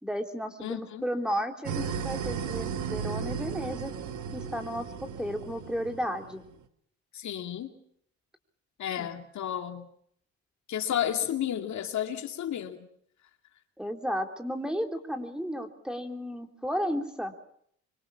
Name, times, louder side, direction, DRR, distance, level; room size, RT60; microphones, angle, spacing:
voice 1, 0.0-3.9 4.3-6.4 9.0-9.1 13.8-17.3, equal, 5° right, 3.3 m, -33 dB
voice 2, 0.6-1.0 7.1-7.7 8.8-9.9 10.7-12.9, left 10 dB, 70° left, 2.4 m, -32 dB
sound 1, 1.7-6.5, right 7 dB, 75° right, 1.8 m, -35 dB
25.5 x 24.0 x 5.8 m
cardioid pair, 90°, 30 cm